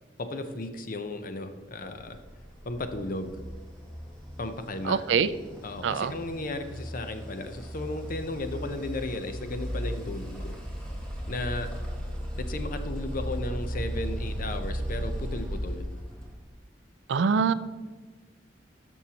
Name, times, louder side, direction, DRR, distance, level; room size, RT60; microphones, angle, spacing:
voice 1, 0.2-2.2 2.6-3.4 4.4-5.0 5.6-10.6 11.3-11.7 12.3-15.8, left 2 dB, 50° left, 8 dB, 0.7 m, -35 dB
sound 1, 2.0-16.5, equal, 5° left, 1.6 m, -36 dB
voice 2, 4.8-5.3 5.8-6.1 17.1-17.5, right 6 dB, 75° right, 14 dB, 0.4 m, -24 dB
12.5 x 6.3 x 2.9 m, 1.3 s
head